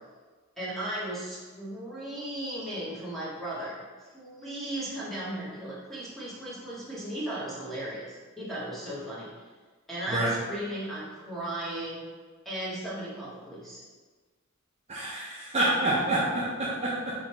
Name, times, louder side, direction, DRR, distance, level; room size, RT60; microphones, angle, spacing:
voice 1, 0.6-9.3 9.9-12.0 12.4-13.8, right 1 dB, ahead, -8 dB, 1.2 m, -36 dB
voice 2, 14.9-17.2, right 1 dB, 30° right, -6 dB, 0.7 m, -27 dB
4.5 x 3.7 x 3.0 m, 1.4 s
head